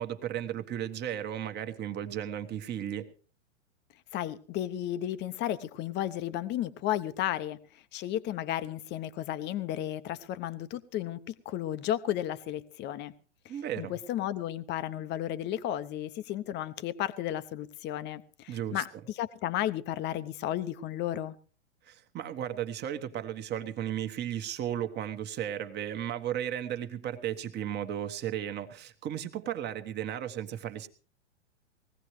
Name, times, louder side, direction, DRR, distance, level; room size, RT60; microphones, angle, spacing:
voice 1, 0.0-3.1 13.5-13.9 18.5-18.8 21.9-30.9, right 10 dB, 25° right, 1.4 m, -35 dB
voice 2, 4.1-13.1 13.4-21.3, left 12 dB, 30° left, 0.8 m, -33 dB
20.0 x 16.0 x 3.2 m
hypercardioid pair, 115°, 37 cm